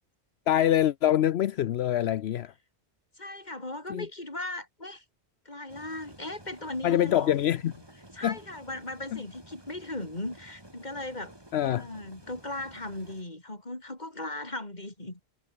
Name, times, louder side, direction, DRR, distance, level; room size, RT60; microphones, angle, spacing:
voice 1, 0.5-2.5 3.9-4.0 6.8-7.7 8.2-8.4 9.1-9.2 11.5-11.9, left 11 dB, 75° left, 0.9 m, -25 dB
voice 2, 3.2-5.0 5.4-7.4 8.1-11.4 11.6-15.2, left 1 dB, 40° left, 4.9 m, -38 dB
sound 1, 5.7-13.2, right 1 dB, 20° right, 4.0 m, -52 dB
omnidirectional pair, 1.1 m